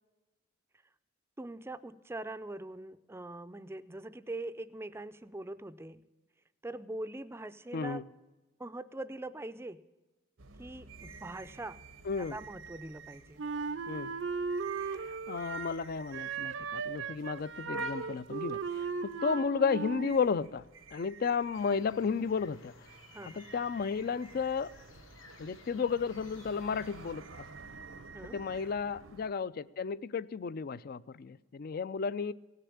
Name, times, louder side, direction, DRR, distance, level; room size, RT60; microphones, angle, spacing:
voice 1, 1.4-6.0 6.6-8.0 8.6-9.8 10.6-11.8 12.3-13.4 23.1-23.4 28.1-28.4, right 2 dB, 10° right, 14 dB, 0.4 m, -42 dB
voice 2, 7.7-8.0 12.1-12.4 13.9-14.1 14.9-20.6 20.9-22.7 23.3-24.7 25.4-27.4 28.3-32.3, left 5 dB, 50° left, 19 dB, 0.4 m, -33 dB
sound 1, 10.4-29.3, right 3 dB, 80° right, 1.0 m, -49 dB
Wind instrument woodwind instrument, 13.4-15.8 16.1-20.2, right 5 dB, 65° right, 0.6 m, -37 dB
sound 2, 21.5-27.1, left 3 dB, 75° left, 1.6 m, -57 dB
17.0 x 6.8 x 8.6 m, 1.2 s
head